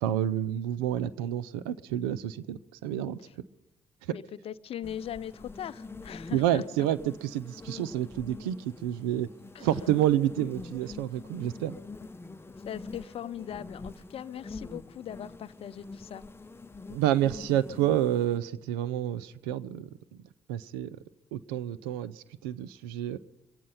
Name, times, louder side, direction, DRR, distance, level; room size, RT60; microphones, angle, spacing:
voice 1, 0.0-3.2 6.3-9.3 9.6-11.8 16.9-19.9 20.5-21.0 21.3-23.2, right 12 dB, 90° right, 16 dB, 0.5 m, -29 dB
voice 2, 4.1-6.9 9.5-9.7 12.7-16.2, left 10 dB, 55° left, 16 dB, 0.6 m, -40 dB
sound 1, 4.8-18.4, left 3 dB, 20° left, 0.8 m, -45 dB
23.0 x 8.7 x 5.6 m, 0.97 s
hypercardioid pair, 55°, 12 cm